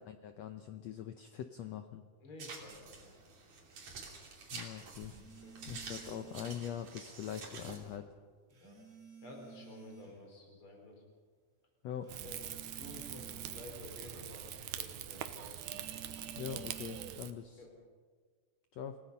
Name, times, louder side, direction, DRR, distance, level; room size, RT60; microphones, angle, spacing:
voice 1, 0.0-2.0 4.5-5.1 5.7-8.1 11.8-12.1 16.3-17.6 18.7-19.0, left 9 dB, 80° left, 7 dB, 1.5 m, -43 dB
voice 2, 2.2-3.2 5.4-5.6 8.5-8.8 9.2-11.0 12.2-15.6 17.6-17.7, left 1 dB, 35° left, 1 dB, 5.0 m, -52 dB
sound 1, 2.4-8.0, right 4 dB, 50° right, 4.0 m, -49 dB
sound 2, 5.0-6.7 8.5-10.2 12.0-13.7 15.5-17.1, right 6 dB, 20° right, 2.5 m, -54 dB
Rain / Fire, 12.1-17.3, right 11 dB, 70° right, 2.2 m, -43 dB
28.5 x 17.5 x 5.5 m, 1.6 s
omnidirectional pair, 4.1 m